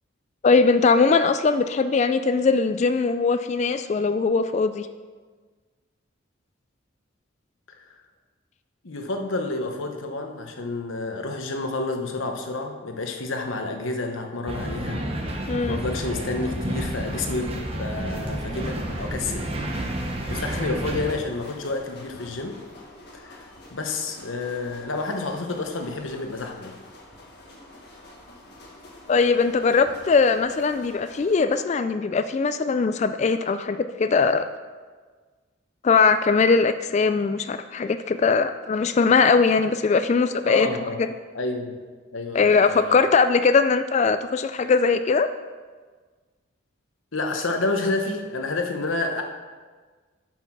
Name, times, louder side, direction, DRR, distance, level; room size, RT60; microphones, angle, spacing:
voice 1, 0.4-4.9 15.5-15.8 29.1-34.5 35.8-40.7 41.0-41.1 42.3-45.3, left 4 dB, 35° left, 11 dB, 0.3 m, -20 dB
voice 2, 8.8-17.5 17.8-19.5 20.3-22.6 23.1-23.4 23.7-26.8 40.5-41.0 41.3-41.8 42.1-43.0 47.1-49.2, left 3 dB, 80° left, 4 dB, 1.1 m, -29 dB
sound 1, 14.5-21.1, right 1 dB, 30° right, 1.0 m, -30 dB
sound 2, 18.1-31.4, left 1 dB, 55° left, 1.7 m, -47 dB
9.1 x 5.7 x 6.1 m, 1.4 s
head